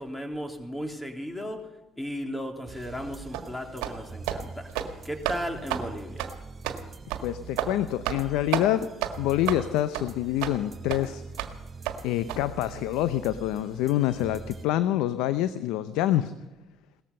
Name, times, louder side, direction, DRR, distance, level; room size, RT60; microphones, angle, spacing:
voice 1, 0.0-1.6 2.0-4.7 5.0-6.3, equal, 10° left, 3 dB, 3.4 m, -35 dB
sound 1, 2.7-14.7, right 5 dB, 30° right, 3.3 m, -44 dB
sound 2, 3.3-3.5 3.8-4.0 4.3-4.4 4.7-4.9 5.2-5.4 5.7-5.9 6.2-6.3 6.6-6.8 7.1-7.2 7.6-7.7 8.0-8.2 8.5-8.7 9.0-9.1 9.5-9.6 9.9-10.1 10.4-10.6 10.9-11.0 11.4-11.5 11.9-12.0 12.3-12.4, right 11 dB, 80° right, 1.6 m, -30 dB
voice 2, 7.2-8.9 9.2-11.2 12.0-16.3, left 13 dB, 75° left, 13 dB, 0.7 m, -26 dB
18.0 x 14.0 x 5.5 m, 1.0 s
hypercardioid pair, 60°, 0 cm